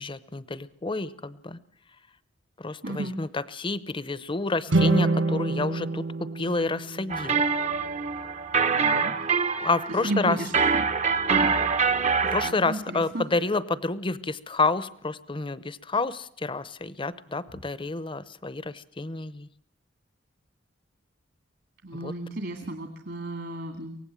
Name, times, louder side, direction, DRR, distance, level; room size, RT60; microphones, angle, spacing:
voice 1, 0.0-1.6 2.6-6.0 6.3-7.4 9.6-10.4 12.3-19.5 22.0-22.1, left 3 dB, 25° left, 17 dB, 0.8 m, -29 dB
voice 2, 2.8-3.2 8.7-9.1 9.6-9.7 10.0-10.9 11.3-11.6 12.2-13.2 21.8-24.0, right 2 dB, 65° right, 5 dB, 2.2 m, -33 dB
sound 1, 4.7-7.9, right 2 dB, 80° right, 1.3 m, -26 dB
sound 2, 7.1-12.5, right 5 dB, 35° right, 0.9 m, -25 dB
24.0 x 18.0 x 7.6 m, 0.67 s
head